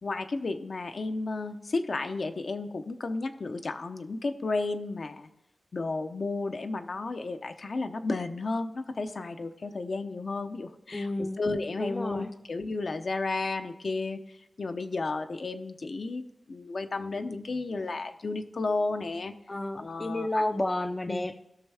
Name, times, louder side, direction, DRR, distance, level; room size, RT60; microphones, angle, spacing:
voice 1, 0.0-5.3 5.7-14.2 14.6-19.3 19.8-20.4 21.1-21.3, left 3 dB, 60° left, 7 dB, 0.7 m, -33 dB
voice 2, 10.9-11.4 11.8-12.3 19.5-21.4, left 1 dB, 20° left, 8 dB, 0.5 m, -31 dB
17.0 x 6.3 x 3.5 m, 0.80 s
wide cardioid pair, 105°, 0 cm